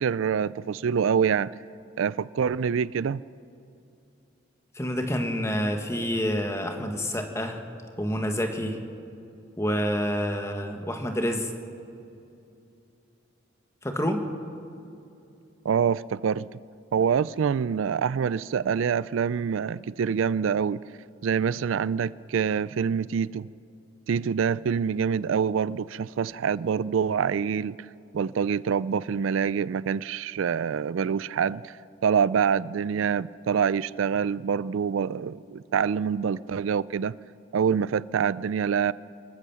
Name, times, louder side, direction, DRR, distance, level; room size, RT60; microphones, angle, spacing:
voice 1, 0.0-1.5 2.0-3.2 15.6-16.6 16.9-20.8 21.2-23.5 24.1-27.8 28.1-31.8 32.0-37.2 37.5-38.9, right 7 dB, 75° right, 0.4 m, -26 dB
voice 2, 4.7-7.6 8.0-8.8 9.6-11.5 13.8-14.3, equal, 15° left, 1.5 m, -28 dB
25.0 x 14.5 x 7.1 m
head